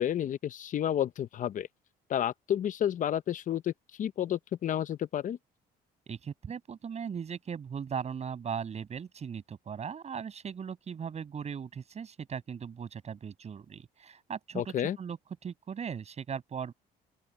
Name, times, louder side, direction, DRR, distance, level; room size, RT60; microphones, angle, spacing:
voice 1, 0.0-1.7 2.1-3.7 4.0-5.4 14.5-15.0, left 10 dB, 50° left, 0.9 m, -30 dB
voice 2, 6.1-15.2 15.4-16.7, right 7 dB, 40° right, 7.9 m, -38 dB
open air
cardioid pair, 110°, 17 cm